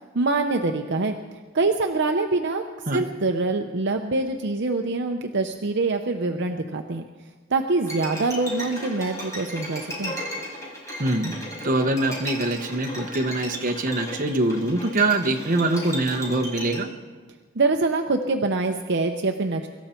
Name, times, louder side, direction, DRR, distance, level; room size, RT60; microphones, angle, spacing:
voice 1, 0.1-1.2 1.5-2.7 2.9-7.0 7.5-10.2 17.5-19.7, right 3 dB, 55° right, 5 dB, 0.7 m, -24 dB
Bowed string instrument, 7.8-16.8, equal, 15° left, 5.1 m, -35 dB
voice 2, 11.0-16.9, right 2 dB, 40° right, 4 dB, 1.1 m, -24 dB
24.0 x 13.0 x 4.4 m, 1.5 s
head